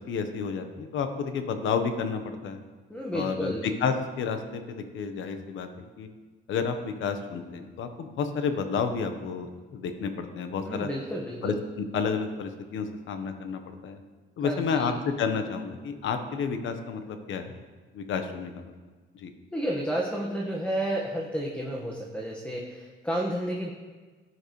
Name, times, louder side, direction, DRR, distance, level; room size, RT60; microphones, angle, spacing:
voice 1, 0.0-2.6 3.1-3.5 3.8-5.7 6.0-6.1 6.5-10.9 11.4-11.5 11.9-14.0 14.4-14.9 15.2-17.5 17.9-18.6 19.1-19.3, left 6 dB, 75° left, 7 dB, 1.2 m, -30 dB
voice 2, 2.9-3.7 10.6-11.6 14.4-14.9 19.5-23.7, right 1 dB, 5° left, -2 dB, 1.5 m, -31 dB
14.0 x 9.6 x 3.2 m, 1.4 s
cardioid pair, 90°, 20 cm